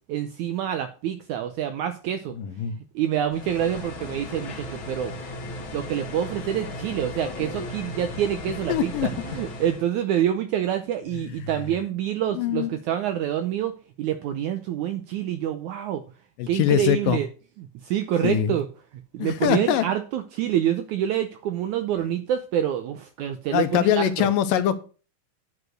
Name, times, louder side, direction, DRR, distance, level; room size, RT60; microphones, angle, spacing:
voice 1, 0.1-2.4 2.9-5.1 5.7-16.0 16.5-17.3 17.6-18.7 19.1-24.3, right 10 dB, 80° right, 8 dB, 1.8 m, -27 dB
voice 2, 2.4-2.8 8.7-9.1 12.4-12.7 16.4-17.2 18.2-18.6 19.2-19.9 23.5-24.8, left 10 dB, 75° left, 10 dB, 2.3 m, -23 dB
sound 1, 3.3-9.8, left 2 dB, 45° left, 1.9 m, -36 dB
9.7 x 4.9 x 6.4 m, 0.35 s
omnidirectional pair, 4.2 m